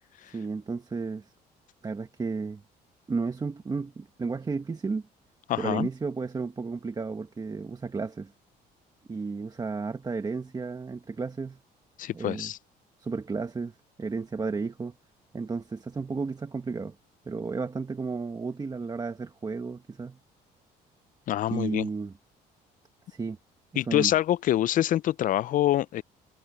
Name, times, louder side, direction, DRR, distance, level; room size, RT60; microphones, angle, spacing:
voice 1, 0.2-1.3 1.8-2.6 3.1-5.0 5.6-8.3 9.1-11.6 12.1-12.5 13.0-14.9 15.3-16.9 17.2-20.2 21.5-22.1 23.1-23.4 23.7-24.1, right 4 dB, 25° right, 1.5 m, -33 dB
voice 2, 5.5-5.9 12.0-12.6 21.3-21.9 23.8-26.0, left 13 dB, 55° left, 0.4 m, -25 dB
cardioid pair, 110°, 17 cm